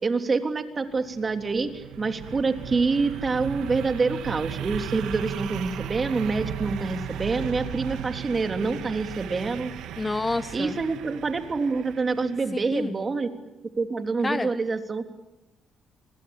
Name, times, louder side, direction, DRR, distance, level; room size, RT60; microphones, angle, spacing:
voice 1, 0.0-9.7 10.5-13.3 13.8-15.0, right 4 dB, 35° right, 7 dB, 3.3 m, -26 dB
sound 1, 0.9-12.6, right 9 dB, 85° right, 2.2 m, -36 dB
voice 2, 10.0-10.8 12.7-12.9 14.2-14.5, left 2 dB, 20° left, 12 dB, 0.9 m, -28 dB
30.0 x 22.0 x 9.0 m, 0.99 s
cardioid pair, 90°, 0 cm